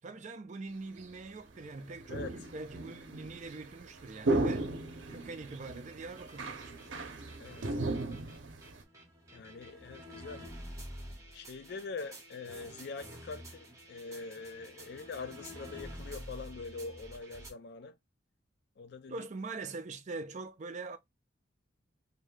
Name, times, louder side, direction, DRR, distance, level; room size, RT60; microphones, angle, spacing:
voice 1, 0.0-4.7 5.1-6.9 19.1-21.0, right 3 dB, 40° right, 0.4 m, -43 dB
sound 1, 1.0-1.1 1.7-8.8, right 2 dB, 80° right, 0.7 m, -36 dB
sound 2, 6.1-17.5, equal, 15° right, 1.0 m, -49 dB
voice 2, 7.4-7.8 9.3-10.5 11.3-18.0 18.8-19.3, left 4 dB, 60° left, 0.4 m, -44 dB
2.6 x 2.3 x 3.2 m
head